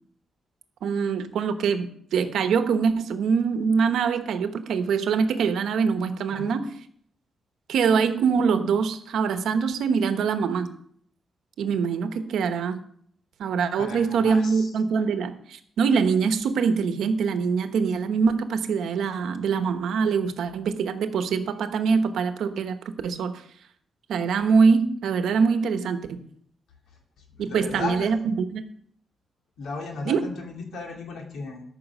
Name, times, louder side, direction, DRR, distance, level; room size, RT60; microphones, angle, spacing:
voice 1, 0.8-6.7 7.7-10.7 11.6-12.8 13.4-22.8 23.0-23.4 24.1-26.2 27.4-28.6 30.0-30.2, right 5 dB, 85° right, 9 dB, 1.1 m, -24 dB
voice 2, 13.8-14.7 27.3-28.2 29.6-31.6, left 3 dB, 85° left, 1 dB, 2.5 m, -35 dB
13.5 x 6.0 x 6.1 m, 0.63 s
wide cardioid pair, 160°, 0 cm